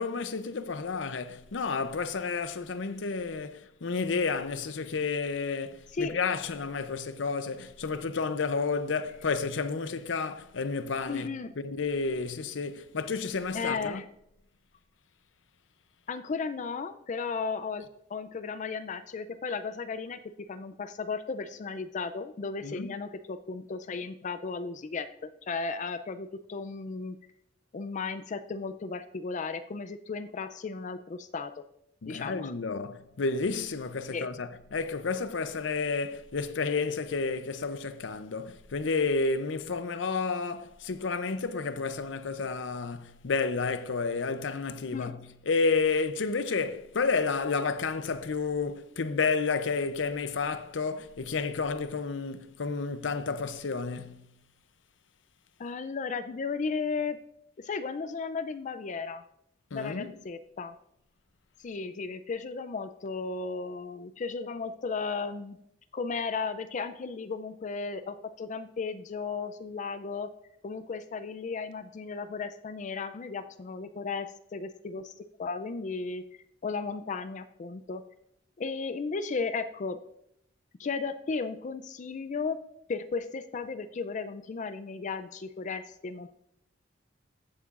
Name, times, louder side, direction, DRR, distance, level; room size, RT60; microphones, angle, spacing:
voice 1, 0.0-11.3 11.6-14.0 22.6-22.9 32.0-54.3 59.7-60.1, left 4 dB, 80° left, 0.6 m, -31 dB
voice 2, 11.1-11.5 13.5-14.0 16.1-27.2 27.7-31.6 32.0-32.5 34.1-34.3 44.9-45.1 55.6-57.2 57.6-59.2 59.7-60.7 61.6-65.6 65.9-70.3 70.6-76.2 76.6-78.0 78.6-80.0 80.8-82.6 82.9-86.3, left 4 dB, 40° left, 0.4 m, -35 dB
15.0 x 8.5 x 2.5 m
head